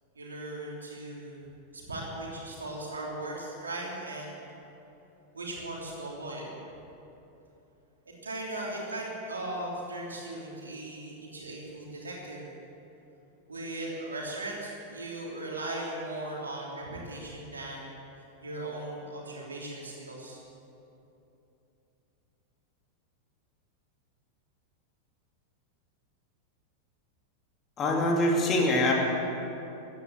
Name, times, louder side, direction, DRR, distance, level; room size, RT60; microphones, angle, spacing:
voice 1, 0.1-1.4 1.7-4.5 5.3-6.6 8.0-12.5 13.5-18.0 18.4-20.4, right 1 dB, 75° right, -3 dB, 3.3 m, -38 dB
voice 2, 27.8-28.9, left 1 dB, 25° left, -1 dB, 2.5 m, -24 dB
15.0 x 10.0 x 7.5 m, 2.9 s
figure-of-eight pair, 90°, 0 cm